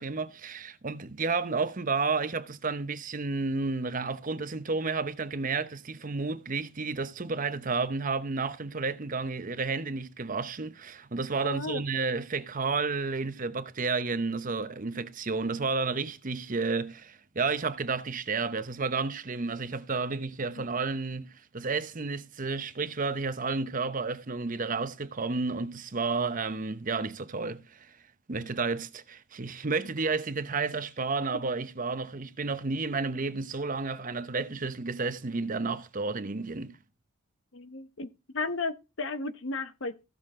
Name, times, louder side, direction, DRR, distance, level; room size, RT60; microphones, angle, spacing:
voice 1, 0.0-27.9 28.3-36.8, right 4 dB, 40° right, 0.8 m, -31 dB
voice 2, 11.4-11.8 20.6-20.7 37.5-40.0, left 3 dB, 65° left, 1.0 m, -34 dB
15.0 x 6.7 x 3.7 m
head